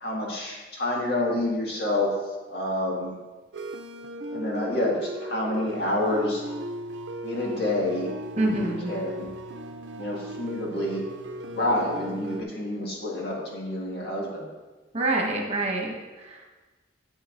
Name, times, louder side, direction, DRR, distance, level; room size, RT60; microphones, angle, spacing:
voice 1, 0.0-2.1 2.5-3.2 4.3-6.4 7.2-9.3 10.0-11.0 11.5-14.5, left 1 dB, 65° left, -3 dB, 1.9 m, -28 dB
sound 1, 3.5-12.4, right 1 dB, 80° right, 0.6 m, -37 dB
voice 2, 8.4-8.9 14.9-16.4, right 2 dB, 40° right, 0 dB, 1.2 m, -27 dB
10.0 x 7.9 x 2.6 m, 1.2 s
head